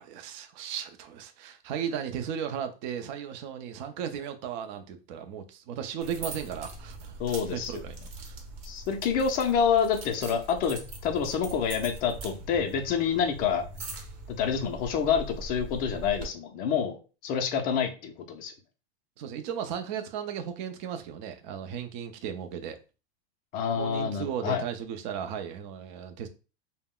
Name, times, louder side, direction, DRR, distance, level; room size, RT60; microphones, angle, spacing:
voice 1, 0.0-7.2 7.5-8.4 19.2-22.8 23.7-26.3, right 8 dB, 45° right, 0.5 m, -36 dB
sound 1, 6.0-16.3, right 2 dB, 70° right, 0.9 m, -42 dB
voice 2, 7.2-7.8 8.6-13.7 14.4-18.5 23.5-24.6, left 7 dB, 30° left, 0.4 m, -27 dB
2.2 x 2.1 x 3.6 m
supercardioid pair, 145°, 32 cm